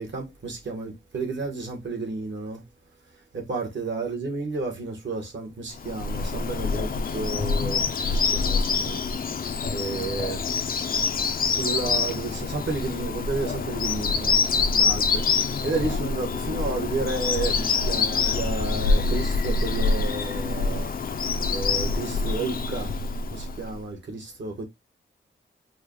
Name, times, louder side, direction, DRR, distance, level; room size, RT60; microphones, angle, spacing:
voice 1, 0.0-2.6 3.3-9.0 9.7-10.5 11.2-14.4 14.7-23.0 23.3-24.6, right 3 dB, 60° right, 1.3 m, -32 dB
Bird vocalization bird call bird song, 5.8-23.8, left 4 dB, 45° left, 0.4 m, -26 dB
4.7 x 2.2 x 3.0 m
wide cardioid pair, 165°, 21 cm